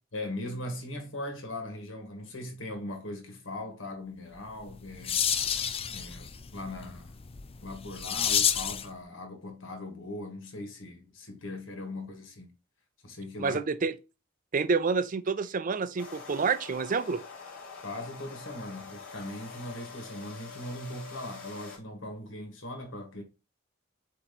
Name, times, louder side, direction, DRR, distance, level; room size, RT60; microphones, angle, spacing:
voice 1, 0.1-5.2 5.9-7.2 7.6-12.5 13.0-13.6 17.8-23.2, left 1 dB, 80° left, 2.0 m, -40 dB
sound 1, 4.5-8.9, left 8 dB, 30° left, 0.5 m, -30 dB
voice 2, 13.4-13.9 14.5-17.2, right 4 dB, 45° right, 0.5 m, -28 dB
sound 2, 16.0-21.8, left 5 dB, 50° left, 3.9 m, -45 dB
7.7 x 3.0 x 4.1 m
head